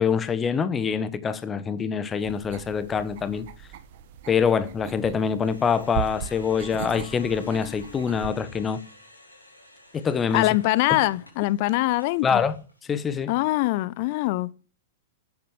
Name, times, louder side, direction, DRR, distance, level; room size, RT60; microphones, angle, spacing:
voice 1, 0.0-3.5 4.3-8.8 9.9-10.5 12.2-12.6 12.9-13.3, left 6 dB, 20° left, 1.1 m, -25 dB
sound 1, 2.2-8.3, right 9 dB, 50° right, 1.4 m, -38 dB
sound 2, 4.7-5.2 6.2-9.5, left 7 dB, 65° left, 6.2 m, -47 dB
sound 3, 5.4-12.8, left 1 dB, 90° left, 4.4 m, -52 dB
voice 2, 10.3-12.4 13.3-14.5, left 19 dB, 45° left, 0.6 m, -23 dB
11.5 x 9.6 x 7.7 m
figure-of-eight pair, 100°, 0 cm